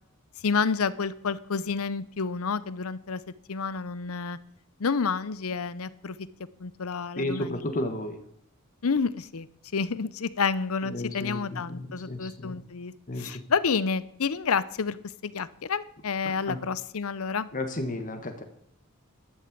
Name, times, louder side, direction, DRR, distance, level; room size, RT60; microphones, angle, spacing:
voice 1, 0.4-3.2 3.5-4.4 4.8-6.2 6.6-7.6 8.8-9.5 9.7-15.0 15.2-17.5, left 5 dB, 70° left, 17 dB, 0.7 m, -29 dB
voice 2, 7.2-8.2 10.8-12.6 13.1-13.3 16.5-16.6 17.5-18.4, left 1 dB, 35° left, 7 dB, 1.4 m, -33 dB
12.0 x 7.7 x 8.5 m, 0.68 s
head